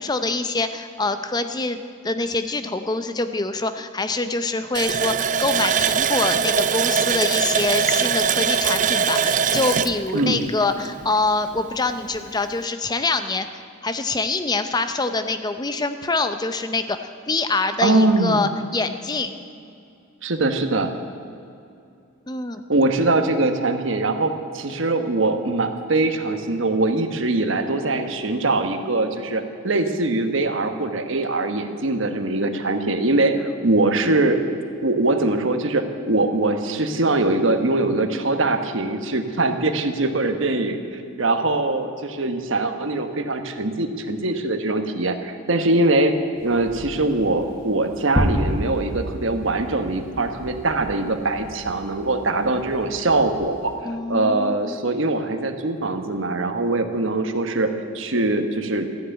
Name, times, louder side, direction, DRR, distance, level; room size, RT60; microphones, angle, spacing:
voice 1, 0.0-13.5 13.8-19.3 22.3-22.6 53.8-54.8, left 3 dB, 20° left, 9 dB, 0.6 m, -25 dB
Water tap faucet, 4.7-11.2 11.6-11.7 12.1-12.3, right 7 dB, 35° right, 0.4 m, -22 dB
voice 2, 10.1-10.4 17.8-18.4 20.2-20.9 22.7-34.4 34.8-40.8 41.2-53.7 54.1-58.9, right 2 dB, 65° right, 7 dB, 1.2 m, -22 dB
sound 1, 46.3-53.8, equal, 60° left, 3.4 m, -45 dB
sound 2, 48.2-50.1, equal, 5° left, 1.2 m, -25 dB
14.0 x 10.0 x 9.0 m, 2.5 s
head